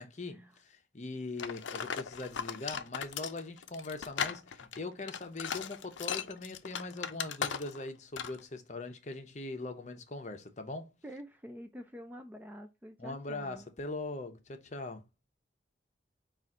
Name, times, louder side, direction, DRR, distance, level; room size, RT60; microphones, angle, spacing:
voice 1, 0.0-10.9 13.0-15.0, left 2 dB, 40° left, 0.7 m, -41 dB
sound 1, 1.4-7.9 8.2-8.4, left 7 dB, 85° left, 0.5 m, -37 dB
voice 2, 11.0-13.7, equal, 10° right, 0.3 m, -47 dB
5.6 x 2.5 x 3.6 m
head